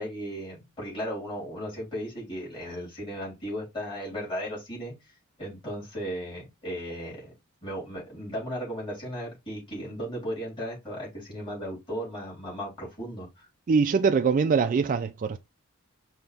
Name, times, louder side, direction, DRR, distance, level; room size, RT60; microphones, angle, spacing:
voice 1, 0.0-4.9 5.4-7.3 7.6-13.5, equal, 25° left, 3.5 m, -36 dB
voice 2, 13.7-15.4, right 5 dB, 40° right, 0.3 m, -23 dB
5.4 x 2.9 x 3.4 m
head